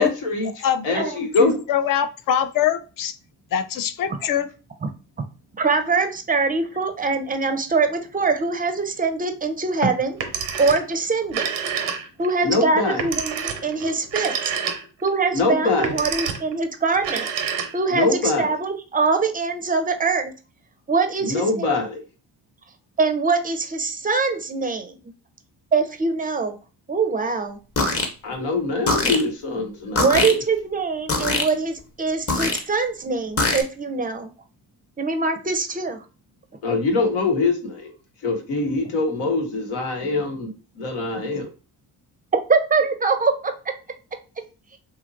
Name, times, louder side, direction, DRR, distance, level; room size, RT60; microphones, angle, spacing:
voice 1, 0.0-0.5 0.8-1.6 12.4-13.0 15.3-15.9 17.9-18.5 21.2-22.0 28.2-30.4 36.6-37.9 38.2-40.5 40.8-41.4, left 3 dB, 80° left, 3 dB, 0.9 m, -23 dB
voice 2, 0.6-3.2 3.5-4.5, left 9 dB, 45° left, 10 dB, 0.5 m, -23 dB
voice 3, 5.5-10.2 10.6-11.5 12.2-14.3 15.0-17.3 17.7-20.3 20.9-21.8 23.0-25.1 25.7-26.6 26.9-27.6 30.0-34.3 35.0-36.0 42.5-43.5 44.7-44.8, right 4 dB, 20° right, 8 dB, 0.4 m, -23 dB
Telephone, 10.1-10.9 11.2-12.3 13.0-15.1 15.7-16.5 17.0-18.0, right 7 dB, 85° right, 0.6 m, -28 dB
sound 1, 27.8-28.1 28.9-29.2 30.0-30.3 31.1-31.5 32.3-32.6 33.4-33.6, left 2 dB, 30° left, 0.8 m, -21 dB
2.8 x 2.4 x 2.5 m, 0.34 s
hypercardioid pair, 50°, 47 cm